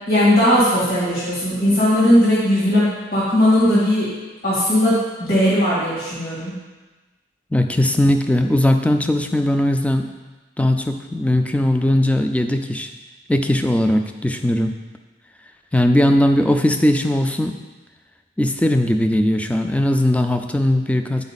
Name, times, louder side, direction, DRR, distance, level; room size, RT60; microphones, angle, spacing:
voice 1, 0.1-4.1 4.4-6.5, left 1 dB, 60° left, -10 dB, 2.6 m, -17 dB
voice 2, 7.5-10.1 10.6-12.9 13.3-14.7 15.7-17.6 18.4-21.2, left 1 dB, 10° left, 6 dB, 0.4 m, -19 dB
9.5 x 4.5 x 4.1 m, 1.2 s
head